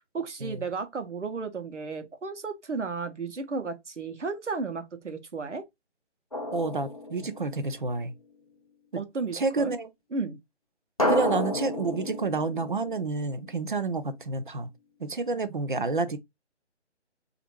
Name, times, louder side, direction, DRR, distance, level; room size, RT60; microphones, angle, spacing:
voice 1, 0.1-5.6 9.0-9.8 10.1-10.4, right 4 dB, 85° right, 0.8 m, -33 dB
Drum, 6.3-7.9 11.0-13.7, left 1 dB, 35° left, 0.4 m, -31 dB
voice 2, 6.5-8.1 9.3-9.9 11.1-14.7 15.0-16.2, right 3 dB, 45° right, 0.4 m, -29 dB
3.1 x 2.5 x 2.8 m
figure-of-eight pair, 150°, 35 cm